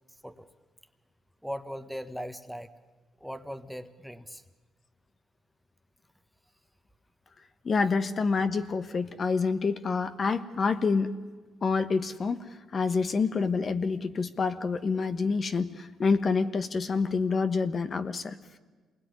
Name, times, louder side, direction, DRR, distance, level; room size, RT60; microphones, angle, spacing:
voice 1, 1.4-2.7 3.2-4.4, equal, ahead, 10 dB, 1.4 m, -39 dB
voice 2, 7.6-11.1 11.6-12.4 12.7-18.4, left 4 dB, 40° left, 10 dB, 1.3 m, -27 dB
26.5 x 20.5 x 9.8 m, 1.4 s
cardioid pair, 85°, 0 cm